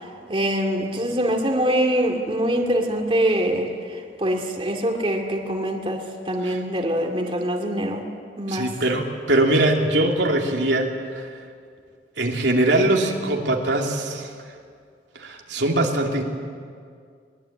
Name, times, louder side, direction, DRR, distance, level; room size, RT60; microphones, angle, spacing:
voice 1, 0.3-8.0 8.4-8.7, right 1 dB, 30° right, 1 dB, 2.4 m, -24 dB
voice 2, 8.5-11.3 12.2-14.3 15.1-16.2, right 1 dB, 85° right, 1 dB, 2.7 m, -22 dB
22.5 x 20.5 x 8.7 m, 2.1 s
head